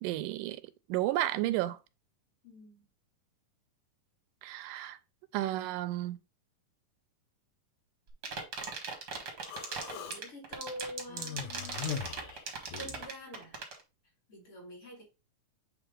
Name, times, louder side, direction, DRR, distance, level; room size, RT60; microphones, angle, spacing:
voice 1, 0.0-0.6 0.9-1.8 4.4-5.0 5.3-6.2, right 15 dB, 85° right, 2.2 m, -32 dB
voice 2, 2.4-2.9 9.9-11.8 12.7-13.6 14.3-15.0, equal, 40° left, 3.4 m, -46 dB
sound 1, 8.1-13.8, right 5 dB, 50° right, 1.2 m, -38 dB
Human voice, 9.4-10.2 11.1-13.1, left 8 dB, 75° left, 2.2 m, -40 dB
8.2 x 3.2 x 3.7 m
omnidirectional pair, 3.8 m